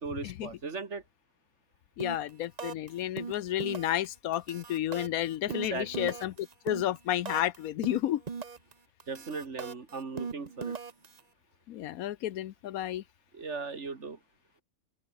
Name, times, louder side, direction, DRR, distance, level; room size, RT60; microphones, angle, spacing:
voice 1, 0.0-1.0 5.5-6.1 9.1-10.8 13.3-14.2, right 4 dB, 55° right, 2.3 m, -38 dB
voice 2, 2.0-8.2 11.7-13.0, left 12 dB, 80° left, 1.2 m, -31 dB
sound 1, 2.0-2.3 2.6-2.9 3.2-4.1 4.3-7.6 7.8-8.7 9.0-11.2, right 5 dB, 35° right, 0.9 m, -39 dB
omnidirectional pair, 1.5 m